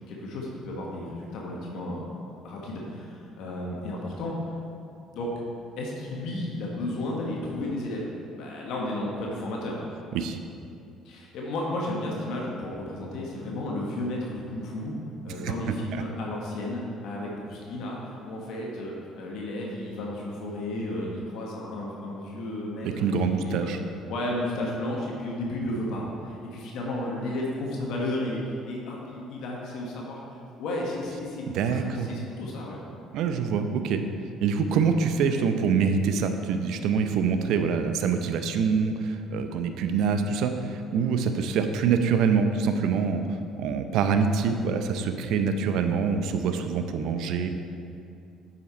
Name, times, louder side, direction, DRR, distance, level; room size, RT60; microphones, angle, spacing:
voice 1, 0.1-2.0 2.4-4.4 5.1-5.3 5.8-9.8 11.0-14.9 15.2-23.7 24.1-30.2 30.6-32.8, left 1 dB, 70° left, -2 dB, 1.2 m, -33 dB
voice 2, 22.8-23.8 31.5-32.1 33.1-34.0 34.4-43.2 43.6-47.5, right 6 dB, 70° right, 7 dB, 0.6 m, -25 dB
7.9 x 5.7 x 4.3 m, 2.5 s
supercardioid pair, 65°, 0 cm